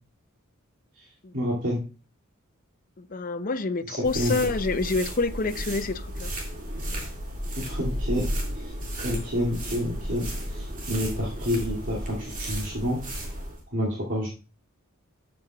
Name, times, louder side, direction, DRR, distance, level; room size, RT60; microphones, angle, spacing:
voice 1, 1.3-1.8 3.9-4.3 7.5-8.3 8.5-8.7 9.0-13.0 13.7-14.3, equal, 60° right, 2.6 m, -29 dB
voice 2, 3.0-6.3, left 3 dB, 40° left, 0.7 m, -27 dB
sound 1, 4.0-13.6, equal, 40° right, 2.3 m, -33 dB
12.5 x 7.6 x 2.4 m
head